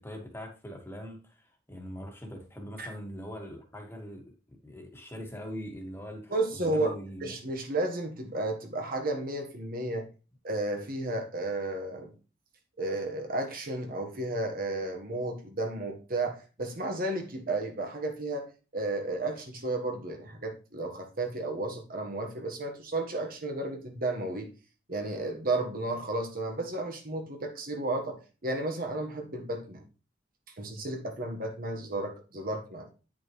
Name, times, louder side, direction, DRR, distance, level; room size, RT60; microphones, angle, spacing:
voice 1, 0.0-7.2, equal, 15° left, 2 dB, 1.6 m, -42 dB
voice 2, 6.3-6.9 7.2-10.0 10.4-12.1 12.8-18.5 18.7-24.5 24.9-29.8 30.6-32.9, right 2 dB, 50° right, 4 dB, 1.3 m, -33 dB
8.8 x 5.9 x 3.1 m, 0.34 s
head